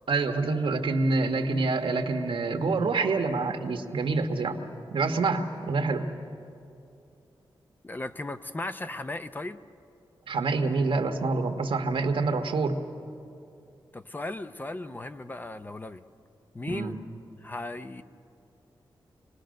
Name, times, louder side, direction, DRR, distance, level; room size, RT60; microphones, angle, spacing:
voice 1, 0.1-4.6 4.9-6.1 10.3-12.8 16.7-17.0, right 3 dB, 80° right, 5 dB, 1.5 m, -27 dB
voice 2, 7.8-9.6 13.9-16.0 16.5-17.0 17.4-18.0, left 2 dB, 20° left, 10 dB, 0.5 m, -36 dB
26.5 x 20.0 x 6.5 m, 2.6 s
wide cardioid pair, 150°, 9 cm